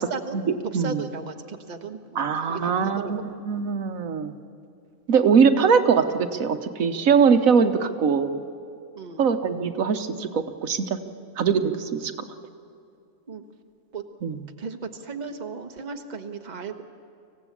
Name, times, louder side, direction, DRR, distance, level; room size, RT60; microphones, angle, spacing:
voice 1, 0.1-3.2 8.9-9.3 13.3-13.4 13.9-14.0 14.6-16.8, right 4 dB, 35° right, 4 dB, 1.3 m, -36 dB
voice 2, 2.1-4.3 5.1-8.4 9.2-11.0 11.4-12.1 14.2-14.4, right 6 dB, 85° right, 8 dB, 1.4 m, -22 dB
25.5 x 16.0 x 8.5 m, 2.5 s
omnidirectional pair, 1.4 m